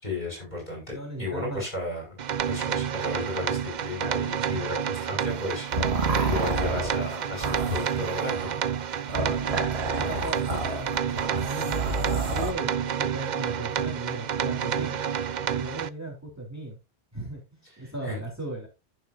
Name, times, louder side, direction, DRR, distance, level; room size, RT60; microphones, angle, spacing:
voice 1, 0.0-2.2 2.4-8.6 18.0-18.2, left 2 dB, 45° left, 0 dB, 5.9 m, -34 dB
voice 2, 0.9-1.7 9.2-9.7 9.9-15.0 15.4-16.8 17.1-18.7, right 2 dB, 15° right, -1 dB, 3.6 m, -37 dB
sound 1, 2.2-15.9, right 8 dB, 50° right, 0.6 m, -29 dB
sound 2, 5.3-12.5, right 2 dB, 75° right, 2.0 m, -30 dB
14.5 x 6.7 x 2.6 m, 0.25 s
omnidirectional pair, 1.1 m